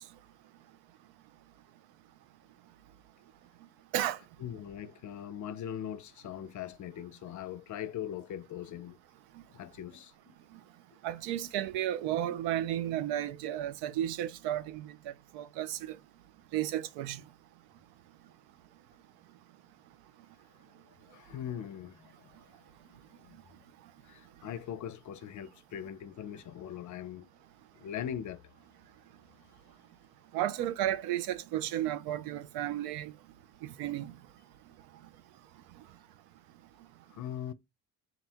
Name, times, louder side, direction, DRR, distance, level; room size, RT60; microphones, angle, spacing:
voice 1, 4.4-9.0 9.5-10.4 21.1-22.6 22.8-23.4 24.0-27.3 27.8-28.4 37.1-37.5, left 10 dB, 50° left, 0.5 m, -41 dB
voice 2, 11.0-16.0 16.5-17.2 30.3-33.1 33.6-34.1, right 12 dB, 80° right, 0.5 m, -33 dB
3.9 x 2.2 x 4.3 m
supercardioid pair, 75°, 38 cm